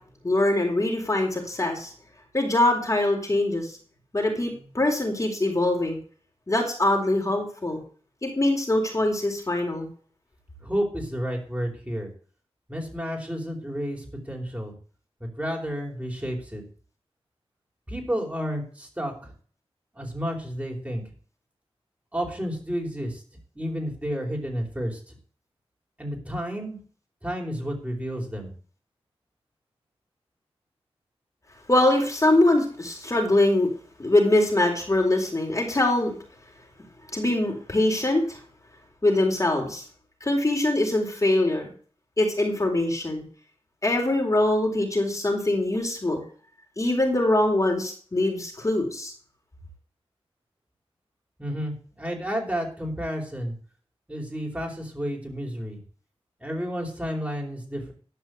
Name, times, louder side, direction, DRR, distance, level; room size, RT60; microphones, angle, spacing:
voice 1, 0.2-1.9 2.3-3.7 4.1-6.0 6.5-7.8 8.2-9.9 31.7-33.7 34.0-36.2 37.1-38.4 39.0-39.8 40.2-41.6 42.2-43.2 43.8-46.2 46.8-49.1, left 1 dB, 30° left, 0 dB, 4.3 m, -23 dB
voice 2, 10.6-12.1 12.7-14.7 15.2-16.6 17.9-19.3 19.9-21.0 22.1-23.2 23.5-25.2 26.0-26.8 27.2-28.5 51.4-53.5 54.1-55.8 56.4-57.9, equal, 15° right, 0 dB, 4.8 m, -31 dB
13.0 x 5.5 x 8.1 m, 0.44 s
wide cardioid pair, 70°, 11 cm